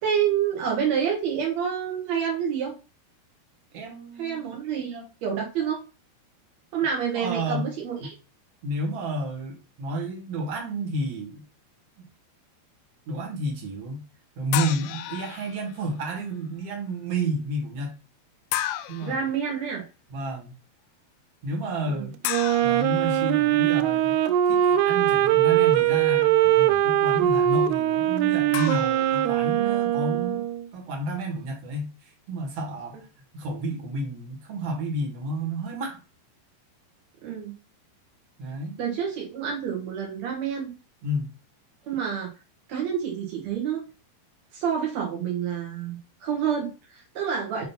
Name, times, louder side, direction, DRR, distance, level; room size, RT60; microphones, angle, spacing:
voice 1, 0.0-2.7 4.2-5.8 6.7-8.1 19.0-19.8 21.8-22.1 37.2-37.5 38.8-40.7 41.8-42.3 42.7-43.8 44.5-47.6, right 8 dB, 75° right, -1 dB, 1.6 m, -28 dB
voice 2, 3.7-5.1 7.1-7.7 8.6-11.4 12.0-12.1 13.1-14.0 14.4-17.9 18.9-19.2 20.1-20.5 21.4-22.1 22.6-24.2 24.5-30.5 30.7-33.1 33.3-36.0 38.4-38.8 41.0-41.3, right 1 dB, 50° right, 0 dB, 2.0 m, -31 dB
sound 1, 14.5-15.8 18.5-19.2 22.2-23.8 28.5-29.7, left 13 dB, 85° left, 2.8 m, -33 dB
Wind instrument woodwind instrument, 22.3-30.7, right 12 dB, 90° right, 2.2 m, -21 dB
7.6 x 2.9 x 5.7 m, 0.32 s
omnidirectional pair, 5.2 m